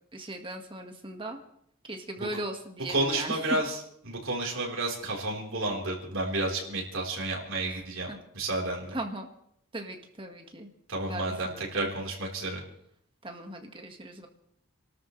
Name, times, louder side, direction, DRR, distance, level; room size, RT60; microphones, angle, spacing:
voice 1, 0.1-1.4 1.9-3.4 7.7-7.8 8.1-8.2 8.9-9.3 9.7-10.7 11.1-11.9 13.2-14.3, right 1 dB, 25° right, 4 dB, 1.7 m, -38 dB
voice 2, 2.9-9.0 10.9-12.6, right 2 dB, 75° right, -1 dB, 4.2 m, -31 dB
28.0 x 13.0 x 3.3 m, 0.71 s
head